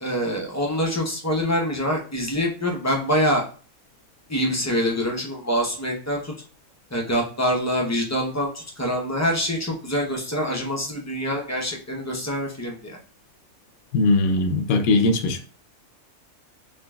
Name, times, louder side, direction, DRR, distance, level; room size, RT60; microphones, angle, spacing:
voice 1, 0.0-3.4 4.3-6.3 6.9-13.0, equal, 25° left, 0.4 m, -25 dB
voice 2, 13.9-15.5, left 2 dB, 75° left, 1.0 m, -20 dB
3.8 x 3.1 x 2.2 m
omnidirectional pair, 1.5 m